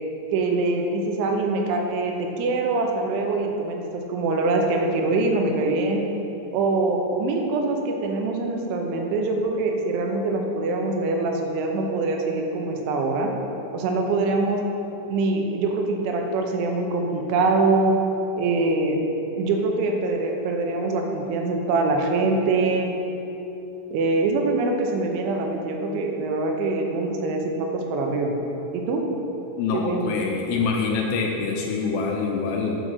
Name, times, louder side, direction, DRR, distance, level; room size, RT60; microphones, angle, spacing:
voice 1, 0.3-6.0 6.5-13.3 13.7-14.6 15.1-18.0 18.4-19.0 19.4-22.9 23.9-28.3 28.7-29.1 29.7-30.1, right 3 dB, 90° right, 2 dB, 3.3 m, -24 dB
voice 2, 29.6-32.8, left 4 dB, 80° left, 0 dB, 2.6 m, -25 dB
9.5 x 5.4 x 6.5 m, 3.0 s
omnidirectional pair, 5.3 m